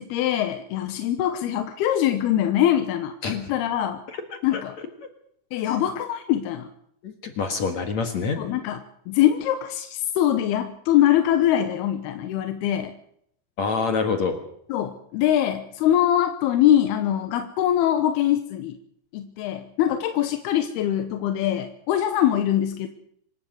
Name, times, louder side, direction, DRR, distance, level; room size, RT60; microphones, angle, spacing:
voice 1, 0.0-4.0 4.4-4.8 5.5-6.7 8.4-8.8 9.1-12.9 14.7-18.8 19.1-22.9, left 11 dB, 70° left, 9 dB, 2.6 m, -23 dB
voice 2, 7.0-8.4 13.6-14.4, left 5 dB, 55° left, 6 dB, 2.0 m, -26 dB
26.0 x 13.0 x 7.8 m, 0.70 s
omnidirectional pair, 5.3 m